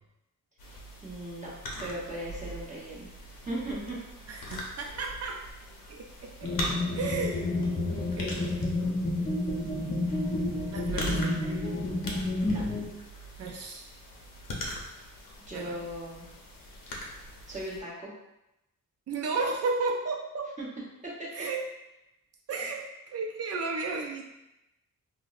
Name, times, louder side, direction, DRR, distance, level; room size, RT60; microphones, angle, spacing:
sound 1, 0.6-17.8, equal, 85° left, 0.8 m, -41 dB
voice 1, 1.0-1.5 1.8-4.0 12.5-12.6 15.0-15.1 15.5-16.2 17.5-18.1 20.6-20.7 21.0-21.3, right 1 dB, 20° right, -6 dB, 1.0 m, -38 dB
voice 2, 4.3-5.4 5.9-7.5 7.9-8.7 10.7-11.7 13.4-13.9 15.5-15.9 19.1-20.5 21.3-21.7 22.5-24.2, right 3 dB, 50° right, 1 dB, 0.4 m, -34 dB
sound 2, 6.4-12.9, left 2 dB, 25° left, 0.5 m, -30 dB
5.0 x 2.0 x 2.4 m, 0.92 s
wide cardioid pair, 135°, 33 cm